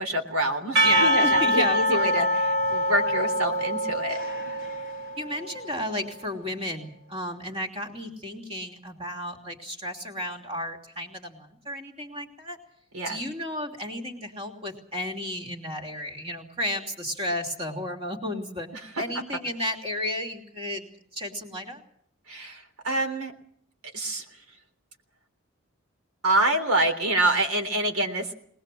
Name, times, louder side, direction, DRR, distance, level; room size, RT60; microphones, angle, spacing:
voice 1, 0.0-4.2 4.5-4.6 12.9-13.2 18.7-19.0 22.3-23.3 23.9-24.2 26.2-28.3, right 1 dB, 90° right, 6 dB, 3.5 m, -26 dB
voice 2, 0.8-2.1 5.2-12.6 13.0-18.7 19.0-21.8, equal, 25° right, 3 dB, 2.9 m, -33 dB
Percussion / Church bell, 0.8-5.8, equal, 60° right, 4.0 m, -25 dB
22.5 x 20.0 x 7.6 m, 0.64 s
head